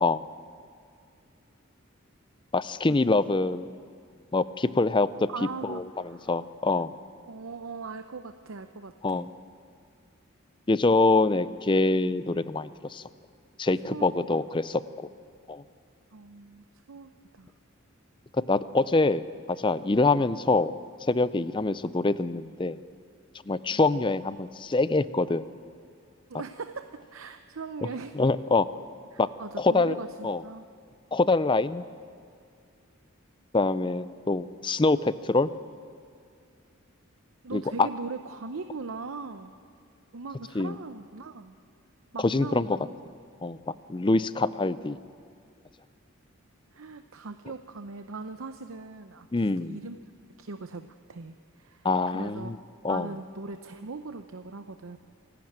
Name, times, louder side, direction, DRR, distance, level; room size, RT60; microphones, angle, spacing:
voice 1, 2.5-3.7 4.3-5.1 5.6-5.8 6.3-6.9 9.0-9.3 10.7-13.0 13.6-15.1 15.5-15.6 18.3-19.2 19.5-20.8 21.1-22.8 23.5-25.5 28.2-28.7 29.2-29.3 29.6-29.9 30.2-30.4 31.1-31.8 33.5-35.5 37.5-37.9 40.6-40.7 42.2-42.8 43.4-43.6 43.9-45.0 49.3-49.8 51.8-52.6 52.8-53.1, left 3 dB, 25° left, 15 dB, 0.5 m, -25 dB
voice 2, 5.3-6.4 7.3-9.2 13.9-14.3 16.1-17.5 23.7-24.0 26.3-28.1 29.1-30.7 37.4-39.6 40.1-41.6 42.1-42.9 46.7-50.0 50.4-52.5 52.9-55.0, right 4 dB, 75° right, 8 dB, 0.7 m, -40 dB
27.0 x 12.0 x 8.9 m, 2.3 s
head